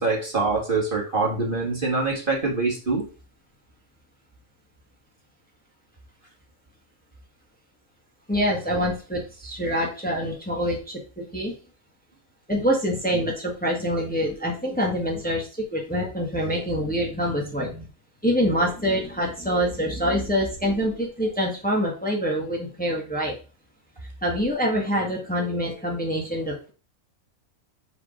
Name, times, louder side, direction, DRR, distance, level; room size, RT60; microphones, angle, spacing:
voice 1, 0.0-3.0, right 3 dB, 40° right, -1 dB, 1.8 m, -24 dB
voice 2, 8.3-11.5 12.5-17.9 18.2-23.4 24.2-26.7, equal, 5° left, -1 dB, 1.5 m, -25 dB
5.2 x 4.8 x 5.0 m, 0.35 s
omnidirectional pair, 1.4 m